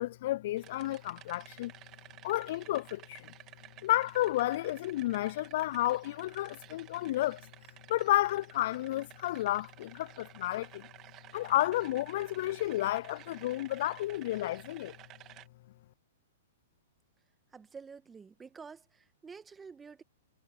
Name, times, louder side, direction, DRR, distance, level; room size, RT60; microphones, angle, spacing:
voice 1, 0.0-1.7 2.2-3.3 3.8-7.5 7.9-10.9 11.3-14.9, left 15 dB, 55° left, 0.4 m, -31 dB
sound 1, 0.6-15.5, right 15 dB, 30° right, 3.4 m, -54 dB
voice 2, 17.5-20.0, right 5 dB, 15° right, 1.9 m, -49 dB
hypercardioid pair, 115°, 0 cm